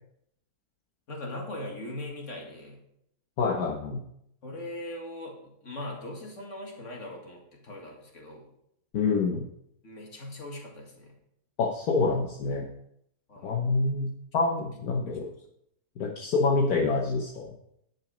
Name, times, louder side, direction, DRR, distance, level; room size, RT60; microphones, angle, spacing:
voice 1, 1.1-2.8 4.4-8.5 9.8-11.2 13.3-13.7 15.0-15.5, left 1 dB, 50° left, 0 dB, 2.3 m, -40 dB
voice 2, 3.4-4.0 8.9-9.4 11.6-12.7 13.4-15.2 16.0-17.5, left 4 dB, 70° left, -1 dB, 1.5 m, -26 dB
10.5 x 6.2 x 5.0 m, 0.75 s
omnidirectional pair, 1.7 m